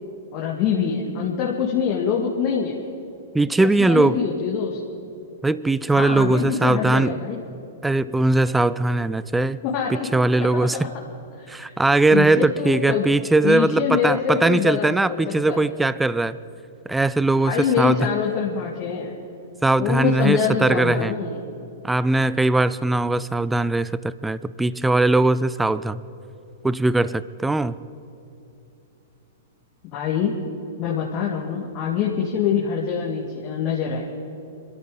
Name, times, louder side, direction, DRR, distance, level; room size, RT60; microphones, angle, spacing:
voice 1, 0.3-2.8 3.6-4.8 5.9-7.4 9.7-10.9 11.4-11.7 12.1-13.1 13.4-15.2 15.5-15.7 17.4-19.1 19.8-21.4 29.9-30.3 30.8-34.1, left 7 dB, 40° left, -2 dB, 1.9 m, -25 dB
voice 2, 3.3-4.2 5.4-7.2 7.8-9.6 9.9-10.8 11.5-16.4 16.9-18.1 19.6-21.1 21.8-26.0 26.6-27.7, right 2 dB, 5° right, 17 dB, 0.5 m, -20 dB
26.0 x 13.0 x 3.8 m, 2.8 s
hypercardioid pair, 110°, 0 cm